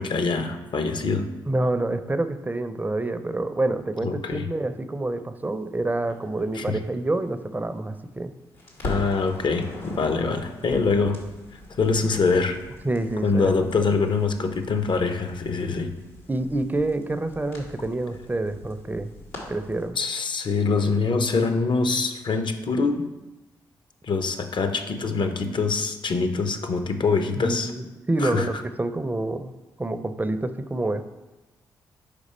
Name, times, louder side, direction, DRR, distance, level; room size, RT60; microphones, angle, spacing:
voice 1, 0.0-1.3 4.0-4.4 6.6-6.8 8.8-11.2 11.8-12.6 13.2-15.9 20.0-23.1 24.0-27.7 28.2-28.5, left 4 dB, 50° left, 8 dB, 0.7 m, -24 dB
voice 2, 1.5-8.3 12.8-13.7 16.3-19.2 19.5-20.0 27.4-29.5 29.8-31.1, right 2 dB, 15° right, 11 dB, 0.5 m, -27 dB
Crackle, 6.1-8.2 8.5-19.9, left 1 dB, 85° left, 1.4 m, -42 dB
5.2 x 4.7 x 4.3 m, 1.1 s
hypercardioid pair, 40°, 10 cm